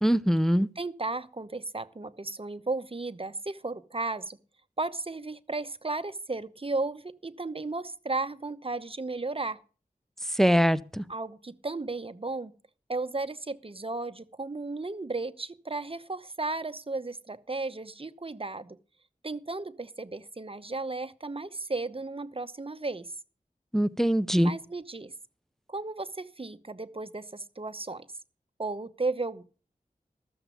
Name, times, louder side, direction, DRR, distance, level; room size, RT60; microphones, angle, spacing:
voice 1, 0.0-0.7 10.4-11.0 23.7-24.5, equal, ahead, 0.6 m, -23 dB
voice 2, 0.8-4.4 4.8-9.6 11.1-12.5 12.9-18.8 19.2-23.1 24.4-25.1 25.7-28.1 28.6-29.4, right 3 dB, 35° right, 0.9 m, -34 dB
13.5 x 7.1 x 7.0 m
wide cardioid pair, 45°, 15 cm